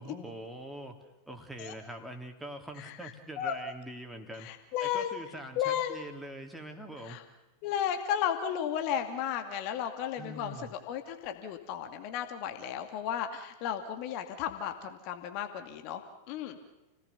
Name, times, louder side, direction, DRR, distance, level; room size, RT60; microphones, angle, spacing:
voice 1, 0.0-4.5 4.8-7.2 10.1-10.7, right 1 dB, 5° right, 4 dB, 3.2 m, -44 dB
voice 2, 2.8-3.1 3.4-3.6 4.4-5.2 5.6-6.1 7.1-7.2 7.6-16.0 16.3-16.6, left 9 dB, 45° left, 6 dB, 2.3 m, -34 dB
30.0 x 18.5 x 7.1 m, 1.0 s
figure-of-eight pair, 90°, 0 cm